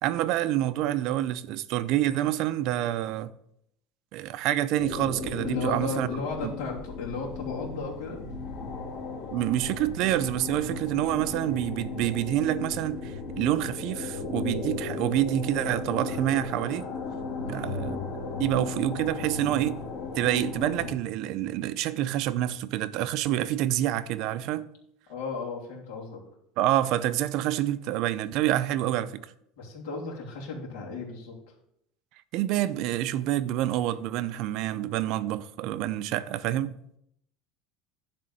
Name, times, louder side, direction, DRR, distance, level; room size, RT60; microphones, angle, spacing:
voice 1, 0.0-3.3 4.1-6.1 9.3-16.9 17.4-18.0 18.4-19.8 20.2-24.7 26.6-29.3 32.3-36.8, right 13 dB, 55° right, 0.5 m, -27 dB
sound 1, 4.8-20.9, left 4 dB, 55° left, 2.6 m, -35 dB
voice 2, 5.4-8.2 17.3-17.7 25.1-26.2 29.6-31.5, left 4 dB, 75° left, 3.0 m, -35 dB
11.0 x 3.8 x 7.5 m
cardioid pair, 155°, 0 cm